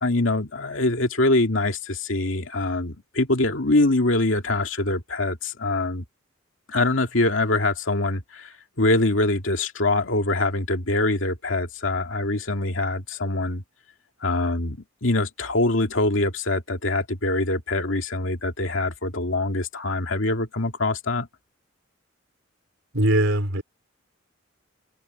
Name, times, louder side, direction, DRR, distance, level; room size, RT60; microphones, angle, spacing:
voice 1, 0.0-6.0 6.7-13.6 14.2-21.3, left 2 dB, 70° left, 2.5 m, -24 dB
voice 2, 22.9-23.6, right 1 dB, 80° right, 4.5 m, -21 dB
head